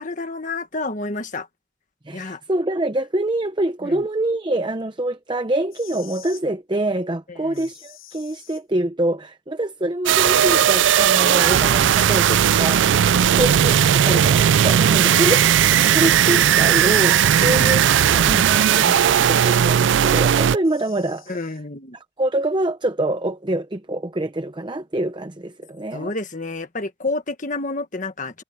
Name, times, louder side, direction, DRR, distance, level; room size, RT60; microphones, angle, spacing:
voice 1, 0.0-1.5 2.1-2.4 3.8-4.1 7.3-7.7 13.0-13.4 15.0-15.5 17.4-17.7 21.3-22.0 25.9-28.4, left 3 dB, 40° left, 1.5 m, -30 dB
voice 2, 2.0-15.4 15.7-21.4 21.9-26.1, right 1 dB, 20° right, 0.7 m, -25 dB
sound 1, 5.6-6.4 7.5-8.6 10.4-11.1 12.6-12.7 13.1-13.9 14.7-15.4 16.6-17.7 18.7-19.6 20.6-21.6, left 13 dB, 85° left, 7.6 m, -46 dB
sound 2, 10.1-20.6, right 9 dB, 60° right, 0.3 m, -16 dB
head